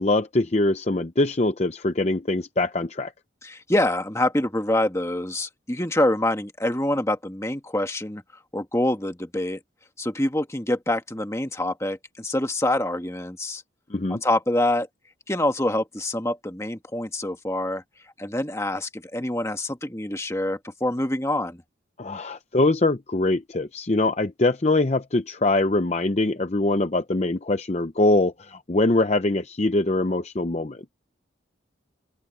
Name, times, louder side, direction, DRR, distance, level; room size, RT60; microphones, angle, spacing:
voice 1, 0.0-3.1 13.9-14.2 22.0-30.9, left 2 dB, 35° left, 0.7 m, -23 dB
voice 2, 3.4-8.2 8.5-9.6 10.0-13.6 14.1-14.9 15.3-17.8 18.2-21.6, left 1 dB, 15° left, 1.5 m, -26 dB
open air
head